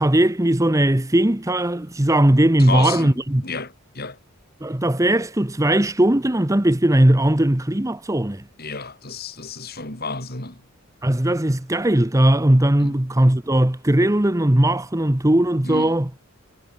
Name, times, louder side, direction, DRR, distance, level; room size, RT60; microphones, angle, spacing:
voice 1, 0.0-3.4 4.6-8.4 11.0-16.1, right 1 dB, 15° right, 1.0 m, -18 dB
voice 2, 2.6-4.2 8.6-10.6 12.8-13.0 15.6-16.0, left 4 dB, 45° left, 5.2 m, -31 dB
head